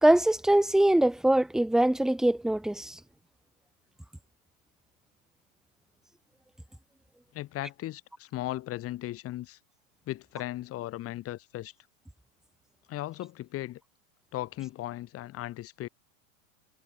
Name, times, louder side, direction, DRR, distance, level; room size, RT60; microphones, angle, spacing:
voice 1, 0.0-3.0, right 1 dB, ahead, 1.3 m, -23 dB
voice 2, 7.3-9.6 10.1-11.7 12.9-13.8 14.3-15.9, left 15 dB, 30° left, 3.9 m, -37 dB
supercardioid pair, 135°, 42 cm